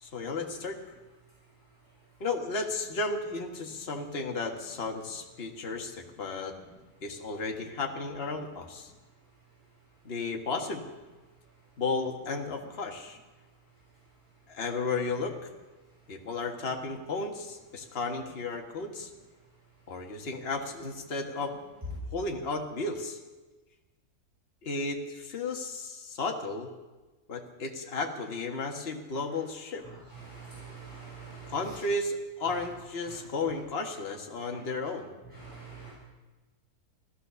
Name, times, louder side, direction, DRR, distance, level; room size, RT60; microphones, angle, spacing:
voice 1, 0.0-0.8 2.2-6.6 7.0-8.9 10.0-10.8 11.8-13.2 14.5-15.5 16.1-19.1 19.9-21.5 22.1-23.2 24.6-26.7 27.3-29.8 31.5-35.1, left 3 dB, 40° left, 3 dB, 1.6 m, -34 dB
voice 2, 30.2-31.6 35.4-35.9, right 5 dB, 5° right, -10 dB, 7.1 m, -45 dB
15.5 x 13.0 x 6.8 m, 1.2 s
omnidirectional pair, 1.6 m